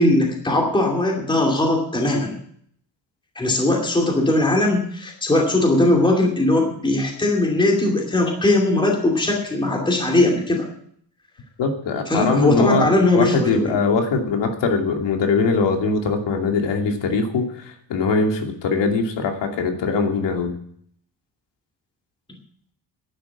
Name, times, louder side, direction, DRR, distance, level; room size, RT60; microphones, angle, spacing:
voice 1, 0.0-2.4 3.4-10.7 12.1-13.8, left 2 dB, 10° left, 0 dB, 2.5 m, -19 dB
voice 2, 11.6-12.9 13.1-20.5, left 4 dB, 75° left, 3 dB, 2.7 m, -21 dB
11.0 x 9.2 x 8.5 m, 0.65 s
cardioid pair, 175°, 43 cm